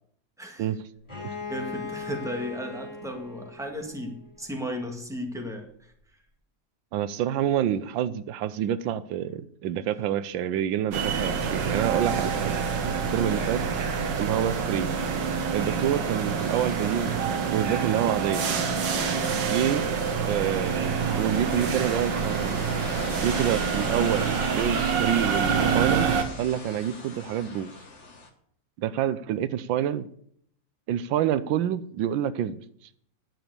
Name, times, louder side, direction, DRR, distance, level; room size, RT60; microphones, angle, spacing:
voice 1, 0.4-0.7 1.3-5.9, equal, ahead, 1.7 m, -35 dB
Bowed string instrument, 1.1-4.7, left 4 dB, 15° left, 4.1 m, -39 dB
voice 2, 6.9-12.5 13.1-13.8 14.2-14.9 15.5-18.4 19.5-19.9 20.3-22.6 23.2-26.1 26.4-27.7 28.8-30.1 30.9-32.6, right 10 dB, 90° right, 1.4 m, -27 dB
sound 1, 10.9-26.2, right 6 dB, 70° right, 1.9 m, -27 dB
sound 2, 16.4-19.0 19.8-28.3, left 3 dB, 40° left, 1.6 m, -42 dB
10.0 x 7.0 x 8.1 m
omnidirectional pair, 2.0 m